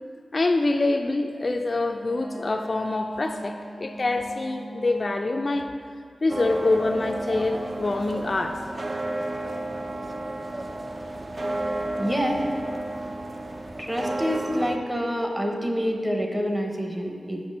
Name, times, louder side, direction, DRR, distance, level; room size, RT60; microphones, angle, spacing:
voice 1, 0.3-5.7 6.2-8.6, left 2 dB, 40° left, 4 dB, 0.3 m, -25 dB
Wind instrument woodwind instrument, 1.9-5.7, right 1 dB, 60° right, 1.8 m, -41 dB
sound 1, 6.3-14.8, right 1 dB, 40° right, 0.5 m, -32 dB
voice 2, 12.0-12.4 13.8-17.4, equal, 15° right, 2 dB, 0.9 m, -27 dB
5.9 x 5.7 x 5.3 m, 2.2 s
wide cardioid pair, 95°, 0 cm